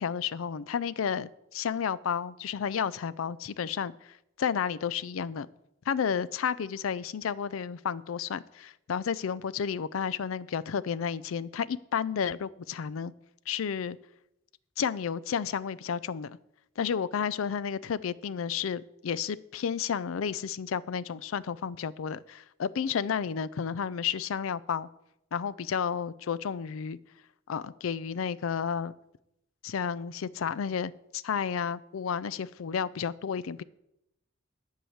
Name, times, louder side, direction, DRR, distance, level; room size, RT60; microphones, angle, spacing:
voice 1, 0.0-3.9 4.4-5.5 5.9-13.1 13.5-14.0 14.8-16.4 16.8-24.9 25.3-27.0 27.5-28.9 29.6-33.6, left 7 dB, 90° left, 18 dB, 0.4 m, -31 dB
10.5 x 4.8 x 7.9 m, 0.83 s
head